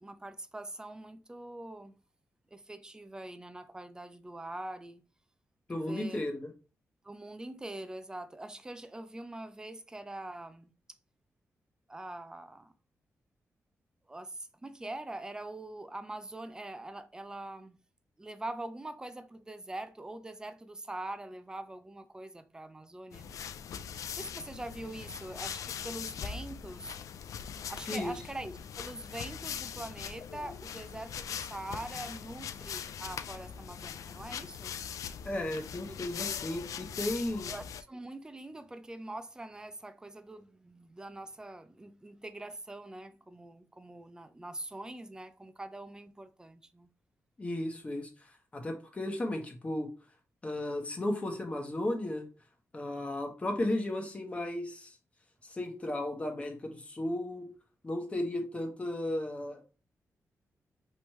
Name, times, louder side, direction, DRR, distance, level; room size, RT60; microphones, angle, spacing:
voice 1, 0.0-1.9 2.5-5.0 5.7-6.2 7.0-10.7 11.9-12.7 14.1-17.8 18.2-23.3 24.1-27.0 27.7-34.7 37.5-46.9, right 1 dB, 15° right, 0.4 m, -43 dB
voice 2, 5.7-6.5 27.9-28.1 35.2-37.5 47.4-49.9 50.4-52.2 52.7-55.0 55.4-57.5 57.8-59.7, left 1 dB, 25° left, 1.1 m, -35 dB
sound 1, 23.1-37.8, left 8 dB, 80° left, 0.4 m, -41 dB
5.2 x 3.1 x 3.1 m
wide cardioid pair, 130°, 6 cm